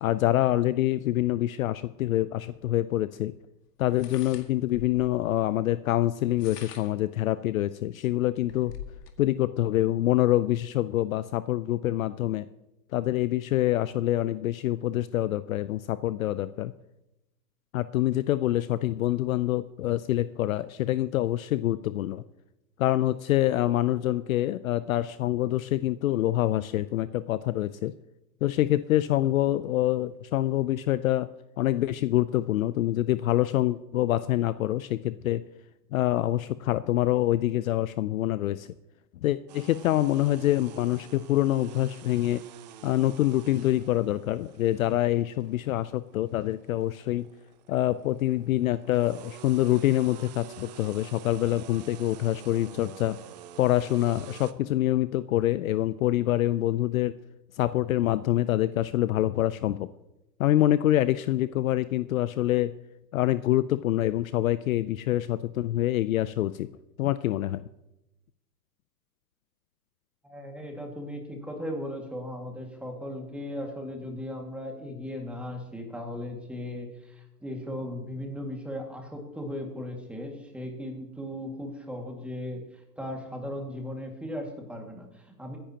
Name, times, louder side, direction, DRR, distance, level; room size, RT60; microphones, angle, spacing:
voice 1, 0.0-3.3 3.8-8.7 9.2-12.5 12.9-16.7 17.7-22.2 22.8-27.9 28.4-31.3 31.6-35.4 35.9-38.7 39.2-42.4 42.8-47.3 47.7-53.2 53.6-57.1 57.6-59.9 60.4-62.7 63.1-66.7 67.0-67.6, left 14 dB, 55° left, 15 dB, 0.6 m, -26 dB
sound 1, 2.5-2.6 3.9-5.2 6.2-7.1 7.7-7.8 8.1-9.2, left 8 dB, 75° left, 2.0 m, -44 dB
sound 2, 39.5-54.5, right 11 dB, 30° right, 0.4 m, -48 dB
voice 2, 70.2-85.6, left 1 dB, ahead, 1 dB, 2.0 m, -37 dB
23.0 x 10.5 x 2.9 m, 0.93 s
hypercardioid pair, 135°, 48 cm